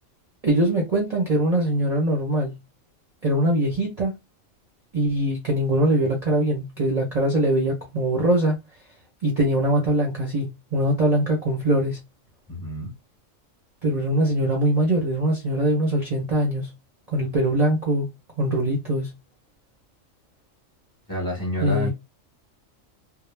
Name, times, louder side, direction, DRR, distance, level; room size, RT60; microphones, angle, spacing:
voice 1, 0.4-2.5 3.2-4.1 4.9-8.6 9.2-12.0 13.8-16.7 17.1-18.1 18.4-19.1 21.6-21.9, right 1 dB, 40° right, 0.6 m, -22 dB
voice 2, 12.5-12.9 21.1-21.9, equal, 15° left, 1.0 m, -29 dB
2.3 x 2.0 x 3.2 m
omnidirectional pair, 1.4 m